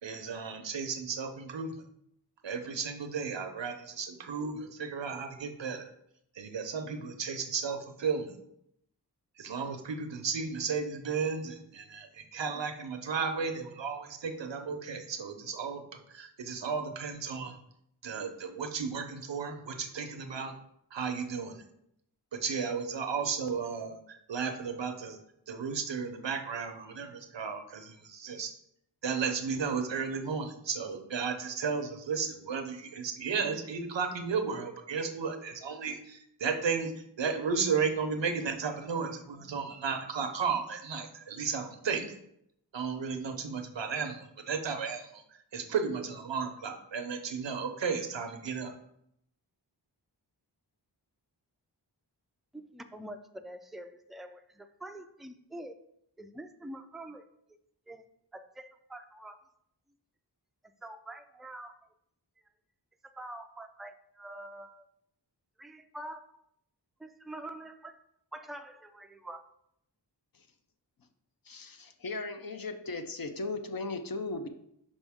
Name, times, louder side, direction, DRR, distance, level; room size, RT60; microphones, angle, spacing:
voice 1, 0.0-1.8 2.4-5.9 6.3-8.3 9.4-17.6 18.0-20.5 20.9-21.6 22.3-25.2 25.5-28.5 29.0-42.2 42.7-48.7, right 5 dB, 85° right, 0.8 m, -34 dB
voice 2, 52.5-55.8 56.2-57.2 57.9-58.1 58.3-59.4 60.8-61.8 63.0-64.9 65.6-66.4 67.0-68.0 68.3-69.4, right 1 dB, ahead, 0.4 m, -45 dB
voice 3, 71.5-74.5, left 3 dB, 55° left, 0.7 m, -37 dB
5.3 x 5.2 x 3.5 m
wide cardioid pair, 65°, 43 cm